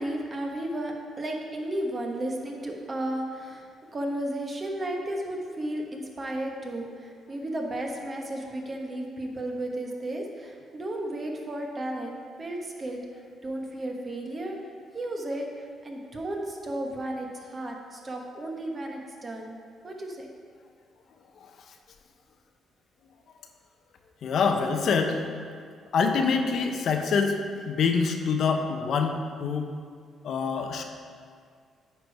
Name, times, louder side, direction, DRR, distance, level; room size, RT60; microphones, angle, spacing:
voice 1, 0.0-13.0 13.4-14.6 14.9-19.6 19.8-20.3, right 1 dB, 35° right, 1 dB, 1.2 m, -33 dB
voice 2, 24.2-25.2 25.9-29.7 30.2-30.8, left 5 dB, 65° left, 5 dB, 0.7 m, -25 dB
9.5 x 4.6 x 4.6 m, 2.1 s
cardioid pair, 90°, 0 cm